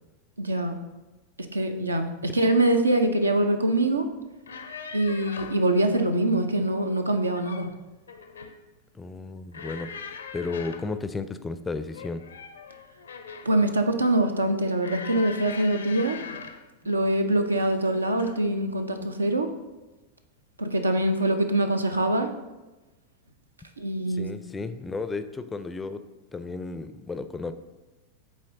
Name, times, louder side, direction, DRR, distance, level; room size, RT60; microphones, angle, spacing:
voice 1, 0.4-0.8 1.4-4.1 4.9-7.7 13.4-16.2 16.9-19.5 20.6-22.3 23.8-24.4, right 1 dB, 80° right, 7 dB, 0.5 m, -24 dB
sound 1, 4.3-5.7 7.1-7.7 8.1-8.6 9.5-10.9 11.9-13.6 14.8-16.7 17.5-17.8 18.2-18.4, left 5 dB, 70° left, 0.5 m, -41 dB
voice 2, 8.9-12.2 24.1-26.0 26.3-27.5, left 3 dB, 15° left, 11 dB, 0.4 m, -34 dB
7.5 x 4.3 x 3.7 m, 1.1 s
figure-of-eight pair, 90°, 0 cm